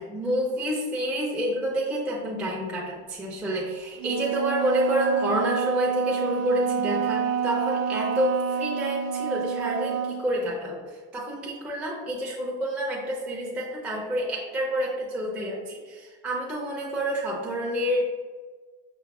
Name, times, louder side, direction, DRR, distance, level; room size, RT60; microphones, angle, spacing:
voice 1, 0.0-10.8 11.1-18.1, equal, 5° right, -4 dB, 0.3 m, -28 dB
Wind instrument woodwind instrument, 4.0-10.3, right 7 dB, 55° right, 0.5 m, -28 dB
5.7 x 2.0 x 2.3 m, 1.4 s
cardioid pair, 170°, 31 cm